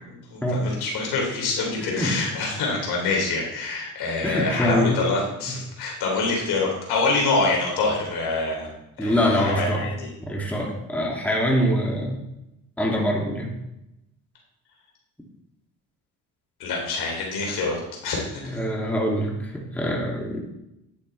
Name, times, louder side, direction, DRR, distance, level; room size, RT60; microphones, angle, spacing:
voice 1, 0.1-8.7 9.0-10.1 16.6-18.6, left 3 dB, 70° left, -2 dB, 3.4 m, -26 dB
voice 2, 1.8-2.1 4.2-5.0 9.0-9.9 10.2-12.2 12.8-13.5 18.5-20.4, equal, 5° left, -2 dB, 2.5 m, -24 dB
9.8 x 8.4 x 3.4 m, 0.87 s
hypercardioid pair, 60°, 40 cm